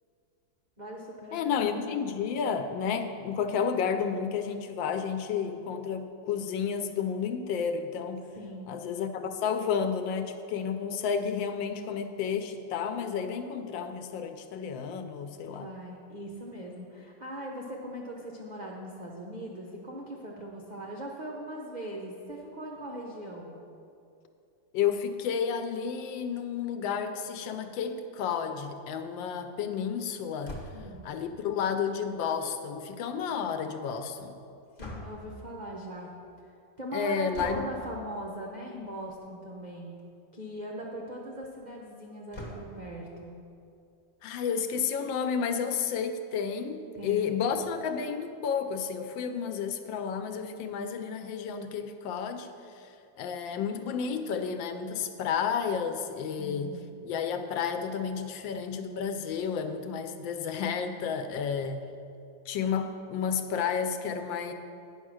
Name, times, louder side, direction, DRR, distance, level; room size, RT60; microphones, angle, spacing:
voice 1, 0.8-1.9 8.3-8.7 15.5-23.6 30.7-31.1 34.8-36.1 36.8-40.0 40.3-43.3 46.9-47.6 56.4-56.9 61.3-61.4, equal, 90° right, -2 dB, 0.4 m, -40 dB
voice 2, 1.3-8.3 8.7-15.7 24.7-30.6 31.0-34.4 36.9-37.7 44.2-52.5 52.8-52.9 53.2-56.7 57.0-61.8 62.5-64.5, left 6 dB, 80° left, 8 dB, 1.3 m, -31 dB
sound 1, 30.4-31.0 34.8-35.4 37.3-37.8 39.0-39.3 39.7-39.8 40.0-40.1 42.3-42.9, left 1 dB, 35° left, 1.0 m, -42 dB
9.5 x 5.5 x 6.2 m, 2.6 s
omnidirectional pair, 2.1 m